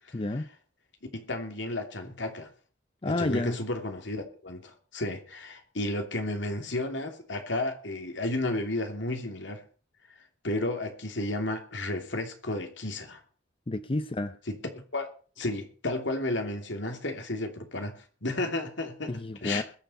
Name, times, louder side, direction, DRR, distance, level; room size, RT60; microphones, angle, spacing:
voice 1, 0.1-0.5 3.0-3.6 13.7-14.4 19.1-19.6, left 2 dB, 30° left, 0.6 m, -30 dB
voice 2, 1.1-2.5 3.0-9.6 10.4-13.2 14.5-15.1 15.4-19.6, left 2 dB, 70° left, 2.9 m, -33 dB
21.0 x 7.3 x 5.6 m
head